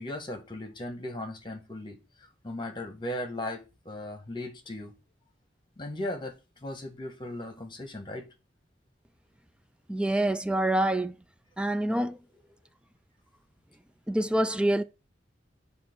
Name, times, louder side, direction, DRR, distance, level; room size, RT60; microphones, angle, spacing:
voice 1, 0.0-4.9 5.8-6.3 6.6-8.3, left 1 dB, 25° left, 1.6 m, -37 dB
voice 2, 9.9-11.1 11.6-12.2 14.1-14.8, right 1 dB, 5° right, 0.4 m, -26 dB
7.3 x 3.1 x 6.1 m
head